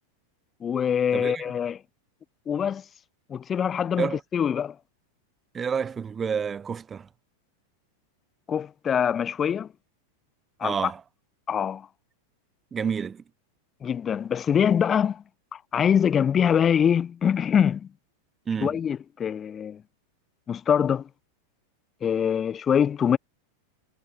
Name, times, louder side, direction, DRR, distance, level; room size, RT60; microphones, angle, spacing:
voice 1, 0.6-1.8 2.5-2.8 3.3-4.8 8.5-9.7 10.6-10.8 11.5-11.9 13.8-15.2 15.5-17.9 18.6-19.8 20.5-21.1 22.0-23.2, left 8 dB, 25° left, 1.0 m, -24 dB
voice 2, 1.1-1.4 4.0-4.2 5.5-7.1 10.6-11.0 12.7-13.2 18.5-18.8, right 6 dB, 20° right, 1.1 m, -29 dB
figure-of-eight pair, 90°, 0 cm